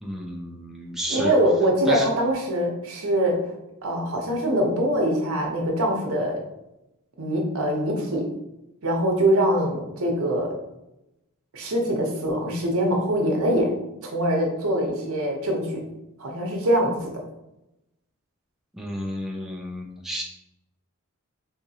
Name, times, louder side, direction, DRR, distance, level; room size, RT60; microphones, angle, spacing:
voice 1, 0.0-1.3 1.9-2.1 18.7-20.2, equal, ahead, -1 dB, 0.4 m, -31 dB
voice 2, 1.1-3.4 3.8-6.4 7.2-8.2 8.8-10.5 11.5-13.7 14.0-15.8 16.2-17.1, right 1 dB, 70° right, 0 dB, 0.8 m, -23 dB
3.6 x 2.9 x 2.8 m, 0.91 s
head